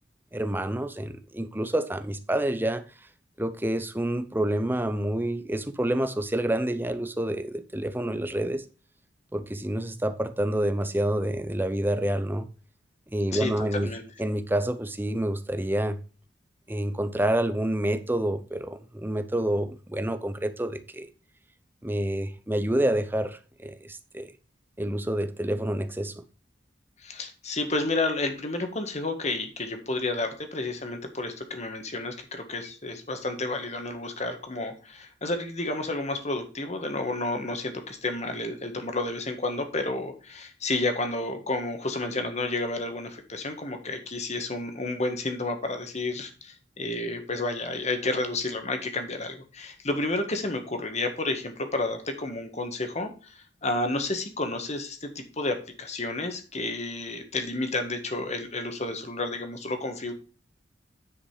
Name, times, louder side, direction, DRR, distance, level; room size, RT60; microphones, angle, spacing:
voice 1, 0.3-2.8 3.4-8.6 9.3-12.5 13.1-13.9 14.2-16.0 16.7-21.1 21.8-24.3 24.8-26.2, right 1 dB, 10° right, 0.8 m, -28 dB
voice 2, 13.3-14.0 27.0-60.1, left 2 dB, 35° left, 1.7 m, -31 dB
9.9 x 5.3 x 4.9 m
head